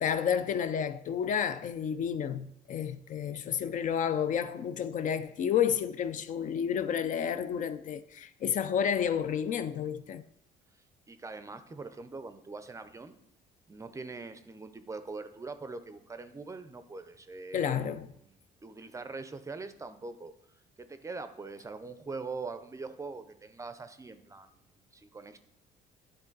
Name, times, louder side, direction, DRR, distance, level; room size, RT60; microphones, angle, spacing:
voice 1, 0.0-10.2 17.5-18.1, left 8 dB, 50° left, 0.4 m, -30 dB
voice 2, 11.1-13.1 13.7-17.8 18.2-18.4 18.6-20.3 20.8-25.4, right 3 dB, 20° right, 0.5 m, -42 dB
9.8 x 3.8 x 3.9 m
cardioid pair, 110°, 17 cm